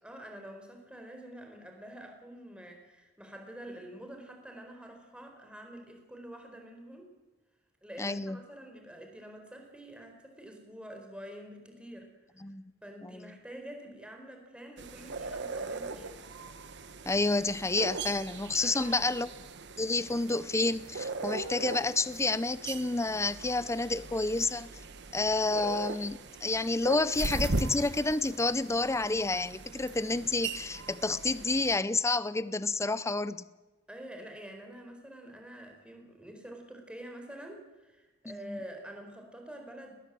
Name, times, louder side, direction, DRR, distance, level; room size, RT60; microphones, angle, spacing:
voice 1, 0.0-7.1 7.8-12.1 12.4-12.5 12.8-16.1 18.6-19.1 33.9-39.9, right 1 dB, 5° right, 3 dB, 4.4 m, -47 dB
voice 2, 8.0-8.4 12.4-12.6 13.0-13.3 17.1-19.3 19.8-24.7 25.1-33.4 38.2-38.6, left 3 dB, 15° left, 16 dB, 0.6 m, -29 dB
sound 1, 14.8-31.8, right 3 dB, 60° right, 1.3 m, -39 dB
20.5 x 19.0 x 7.7 m, 1.2 s
head